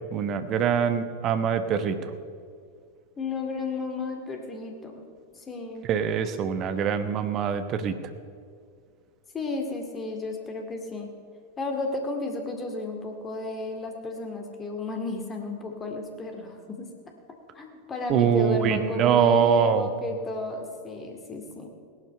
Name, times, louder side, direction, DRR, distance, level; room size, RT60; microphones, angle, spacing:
voice 1, 0.1-2.1 5.9-8.0 18.1-19.9, right 7 dB, 35° right, 9 dB, 1.1 m, -23 dB
voice 2, 3.2-5.0 5.4-5.9 9.3-11.1 11.6-16.9 17.5-21.7, left 3 dB, 20° left, 3 dB, 2.2 m, -33 dB
17.5 x 11.5 x 5.5 m, 2.1 s
figure-of-eight pair, 90°, 0 cm